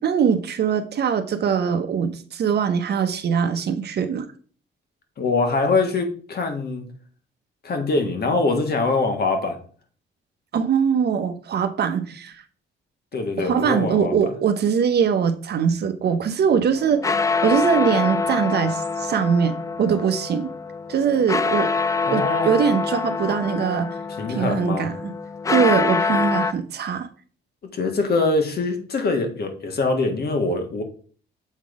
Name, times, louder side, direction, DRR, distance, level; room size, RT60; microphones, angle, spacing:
voice 1, 0.0-4.3 10.5-12.4 13.4-17.1 17.4-20.5 20.9-21.7 22.1-23.9 24.3-25.1 25.5-27.1, right 7 dB, 55° right, 8 dB, 0.8 m, -22 dB
voice 2, 5.2-6.9 7.6-9.6 13.1-14.1 22.0-22.6 24.2-24.9 27.7-30.8, left 3 dB, 55° left, 5 dB, 1.6 m, -23 dB
sound 1, 16.8-26.5, left 4 dB, 15° left, 0.3 m, -25 dB
7.4 x 3.7 x 4.8 m, 0.44 s
cardioid pair, 90°, 20 cm